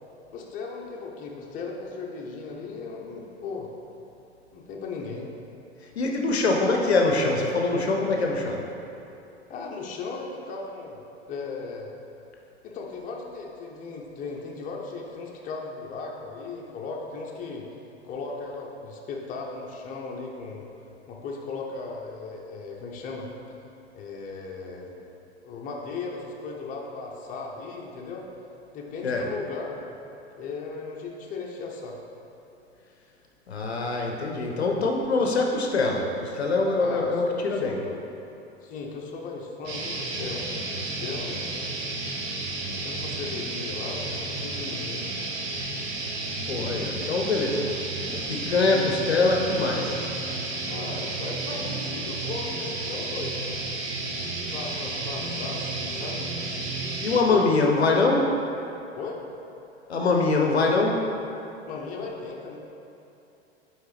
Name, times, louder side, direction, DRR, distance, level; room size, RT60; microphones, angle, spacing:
voice 1, 0.3-3.7 4.5-5.3 9.5-11.0 11.2-11.9 12.6-17.7 18.0-20.7 21.1-23.3 23.9-24.9 25.4-28.3 28.7-29.7 30.3-32.0 36.8-38.0 38.6-41.4 42.8-45.1 48.3-49.1 50.7-53.6 54.5-56.2 57.3-57.6 58.1-58.2 59.0-59.2 61.7-62.6, left 4 dB, 25° left, -1 dB, 0.7 m, -37 dB
voice 2, 6.0-8.6 29.0-29.2 33.5-37.8 46.5-50.0 57.0-58.2 59.9-61.0, left 3 dB, 75° left, 1 dB, 0.7 m, -24 dB
sound 1, 39.6-57.2, right 2 dB, 40° right, 0.9 m, -32 dB
9.0 x 3.2 x 3.3 m, 2.9 s
figure-of-eight pair, 90°, 33 cm